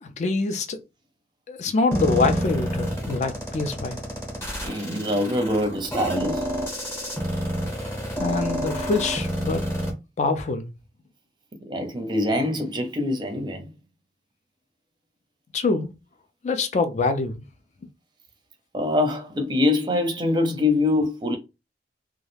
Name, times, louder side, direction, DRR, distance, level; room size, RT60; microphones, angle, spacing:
voice 1, 0.0-0.8 1.5-4.0 8.2-9.7 10.2-10.7 15.5-15.9 16.4-17.4, left 3 dB, 40° left, 0.4 m, -25 dB
sound 1, 1.9-9.9, equal, 15° left, 0.7 m, -28 dB
voice 2, 4.6-6.5 11.7-13.7 18.7-21.4, left 2 dB, 25° right, 0.5 m, -24 dB
2.3 x 2.1 x 3.1 m
head